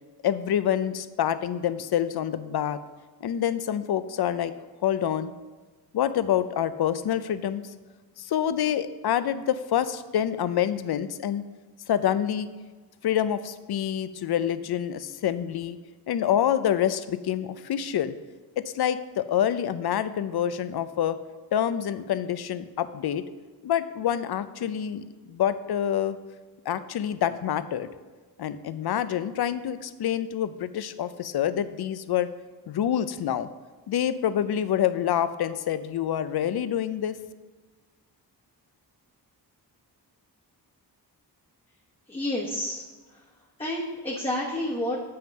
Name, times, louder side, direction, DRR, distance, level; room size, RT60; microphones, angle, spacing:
voice 1, 0.2-2.8 3.2-4.5 4.8-5.3 5.9-7.6 8.2-11.4 11.9-12.5 13.0-15.8 16.1-18.1 18.6-21.2 21.5-23.2 23.6-26.2 26.7-27.9 28.4-32.3 32.7-33.5 33.9-37.2, left 10 dB, 70° left, 13 dB, 0.5 m, -27 dB
voice 2, 42.1-42.8 43.6-45.0, left 1 dB, 15° left, -5 dB, 1.1 m, -29 dB
7.6 x 5.7 x 5.2 m, 1.3 s
wide cardioid pair, 115°, 40 cm